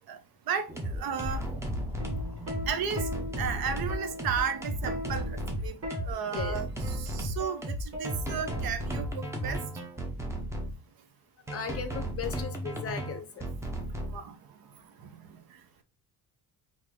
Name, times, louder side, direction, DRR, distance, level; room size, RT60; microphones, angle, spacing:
sound 1, 0.7-10.7 11.5-14.2, right 1 dB, 5° right, 0.6 m, -34 dB
voice 1, 1.0-1.4 2.7-3.0 3.4-5.8 6.1-9.6 14.1-14.3, right 7 dB, 65° right, 0.6 m, -33 dB
Plucked string instrument, 2.0-9.0 10.1-10.4, left 1 dB, 35° right, 1.3 m, -40 dB
voice 2, 11.5-13.3, left 6 dB, 35° left, 0.5 m, -36 dB
3.6 x 2.6 x 3.2 m
cardioid pair, 150°, 40 cm